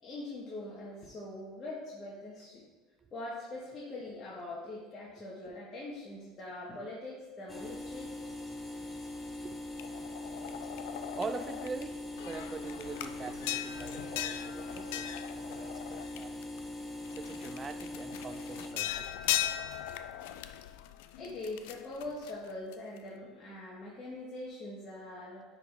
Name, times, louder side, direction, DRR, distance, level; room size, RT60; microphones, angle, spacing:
voice 1, 0.0-2.6 3.1-8.1 21.2-25.4, left 2 dB, 30° left, -6 dB, 1.4 m, -42 dB
sound 1, 7.5-18.7, left 1 dB, 10° left, 0.8 m, -42 dB
sound 2, 9.8-11.8 12.2-16.6 17.0-23.0, left 12 dB, 80° left, 0.3 m, -39 dB
voice 2, 10.9-15.0 15.3-16.4 17.1-19.2, right 4 dB, 25° right, 12 dB, 0.3 m, -43 dB
9.7 x 3.9 x 3.4 m, 1.2 s
supercardioid pair, 120°, 0 cm